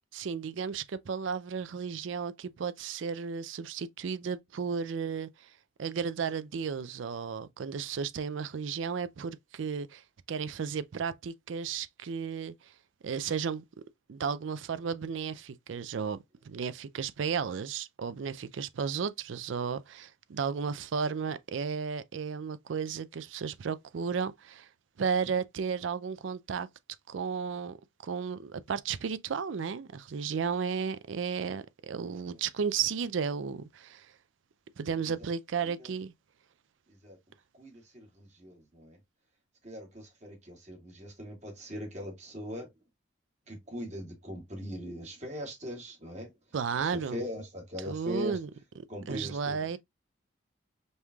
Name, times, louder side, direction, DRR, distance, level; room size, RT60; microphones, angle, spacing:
voice 1, 0.1-5.5 5.8-10.0 10.3-12.7 13.0-13.6 14.1-24.7 25.0-26.7 27.1-27.8 28.0-34.1 34.8-36.1 46.5-47.2 47.9-48.5 49.1-49.8, right 6 dB, 75° right, 0.4 m, -34 dB
voice 2, 35.6-36.0 36.9-37.2 37.6-39.0 39.6-42.7 43.5-46.3 46.7-48.4 48.9-49.8, equal, 35° right, 1.8 m, -41 dB
5.3 x 3.1 x 2.3 m
head